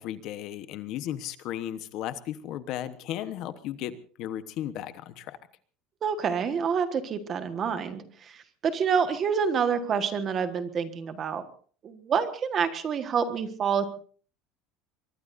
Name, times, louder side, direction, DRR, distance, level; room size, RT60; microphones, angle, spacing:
voice 1, 0.0-3.9 4.2-5.4, left 11 dB, 45° left, 12 dB, 1.1 m, -35 dB
voice 2, 6.0-11.4 11.8-13.9, right 6 dB, 25° right, 9 dB, 1.4 m, -27 dB
24.0 x 22.0 x 2.6 m, 0.44 s
cardioid pair, 180°, 0 cm